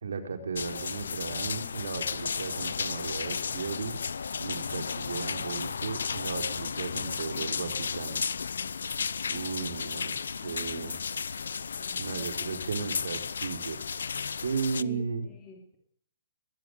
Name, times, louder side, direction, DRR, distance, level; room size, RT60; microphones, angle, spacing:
voice 1, 0.0-3.9 4.4-8.2 9.3-10.1 10.4-11.0 12.0-13.8 14.4-15.2, right 5 dB, 80° right, 5 dB, 4.6 m, -35 dB
sound 1, 0.6-14.8, left 6 dB, 85° left, 0.8 m, -34 dB
voice 2, 9.2-9.9 10.2-11.0 11.7-12.6 14.8-15.8, left 4 dB, 10° left, -1 dB, 3.0 m, -50 dB
21.5 x 16.0 x 8.2 m, 0.64 s
hypercardioid pair, 175°, 0 cm